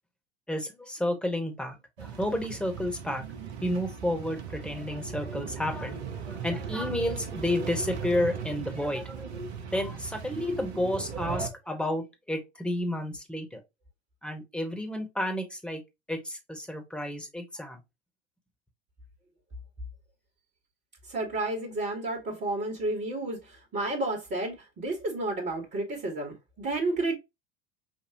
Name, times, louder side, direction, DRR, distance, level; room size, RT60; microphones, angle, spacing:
voice 1, 0.5-3.2 3.6-6.0 6.3-9.3 9.7-13.6 14.2-15.8 16.1-17.8, left 1 dB, 5° left, 1.5 m, -31 dB
sound 1, 2.0-11.5, right 6 dB, 75° right, 1.0 m, -38 dB
voice 2, 21.0-27.2, right 2 dB, 30° right, 1.7 m, -31 dB
6.5 x 2.6 x 2.9 m
figure-of-eight pair, 80°, 33 cm